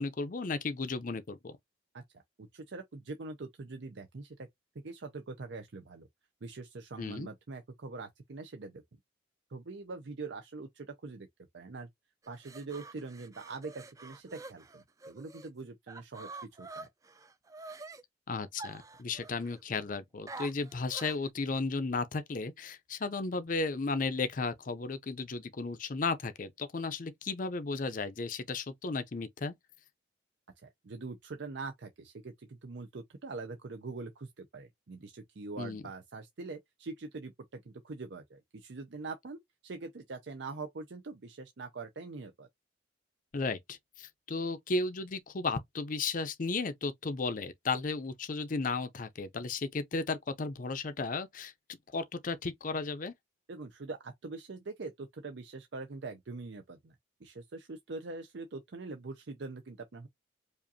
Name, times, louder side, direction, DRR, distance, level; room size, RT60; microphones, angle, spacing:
voice 1, 0.0-1.6 7.0-7.3 18.3-29.5 35.6-35.8 43.3-51.5 51.9-53.1, left 3 dB, 45° left, 0.5 m, -34 dB
voice 2, 1.9-4.5 4.8-6.1 6.4-8.8 9.5-11.3 11.5-11.9 12.3-16.3 16.6-16.9 30.6-42.5 53.5-57.0 57.2-60.1, right 3 dB, 65° right, 0.6 m, -43 dB
sound 1, 12.2-15.5 15.9-18.0 18.6-19.6 20.3-21.3, right 3 dB, 15° right, 0.4 m, -47 dB
5.0 x 2.5 x 2.7 m
head